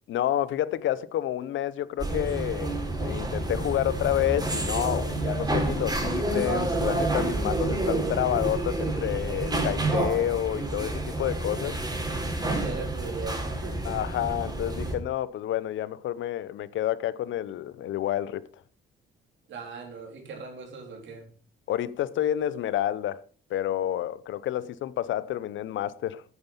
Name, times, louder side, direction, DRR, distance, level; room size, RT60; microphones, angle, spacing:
voice 1, 0.1-2.7 3.0-11.7 13.9-18.4 21.7-26.2, left 12 dB, 75° left, 0.8 m, -29 dB
sound 1, 2.0-14.9, right 2 dB, 20° right, 4.7 m, -29 dB
voice 2, 12.5-13.8 19.5-21.3, right 4 dB, 70° right, 3.7 m, -38 dB
9.5 x 9.1 x 5.5 m
cardioid pair, 90°, 20 cm